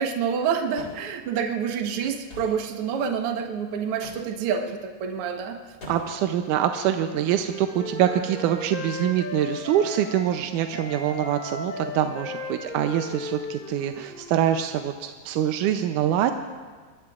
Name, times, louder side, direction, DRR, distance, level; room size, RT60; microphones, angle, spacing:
voice 1, 0.0-5.6, right 7 dB, 60° right, 3 dB, 1.5 m, -27 dB
sound 1, 0.7-1.1 2.3-2.6 4.0-4.3 5.8-6.2, left 1 dB, 25° left, 3.3 m, -42 dB
voice 2, 5.9-16.3, right 10 dB, 75° right, 6 dB, 1.9 m, -25 dB
Wind instrument woodwind instrument, 6.8-10.4 10.7-14.5, left 2 dB, 10° left, 0.9 m, -36 dB
26.5 x 21.5 x 2.4 m, 1.4 s
omnidirectional pair, 4.1 m